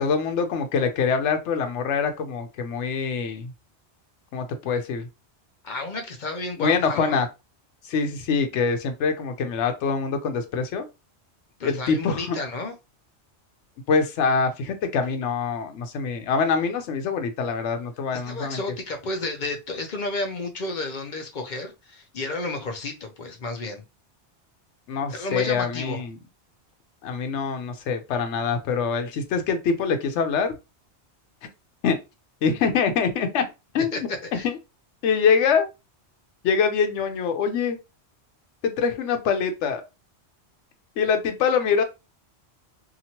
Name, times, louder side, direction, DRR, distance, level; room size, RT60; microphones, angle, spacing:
voice 1, 0.0-3.5 4.3-5.1 6.6-7.3 7.8-10.8 11.6-12.4 13.9-18.6 24.9-26.2 27.0-30.5 31.8-32.0 32.4-33.4 33.7-34.1 34.4-34.6 35.0-35.7 36.4-37.8 38.6-39.8 41.0-41.8, left 5 dB, 90° left, 0.9 m, -24 dB
voice 2, 5.6-7.2 11.6-12.7 18.1-23.8 25.1-26.0 33.9-34.5, left 2 dB, 50° left, 0.6 m, -32 dB
2.8 x 2.4 x 2.8 m
omnidirectional pair, 1.2 m